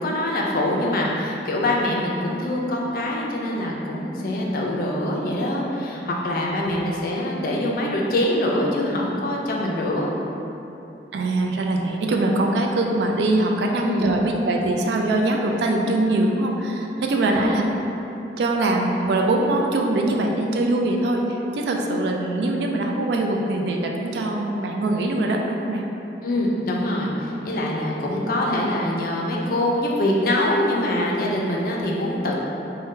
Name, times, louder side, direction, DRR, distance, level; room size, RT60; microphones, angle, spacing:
voice 1, 0.0-10.1 13.8-14.1 17.3-17.6 26.2-32.4, left 1 dB, 50° left, -2 dB, 0.4 m, -24 dB
voice 2, 6.6-7.1 11.1-17.7 18.4-25.8 27.0-27.1, right 2 dB, 70° right, 1 dB, 0.3 m, -23 dB
2.6 x 2.2 x 3.6 m, 2.9 s
head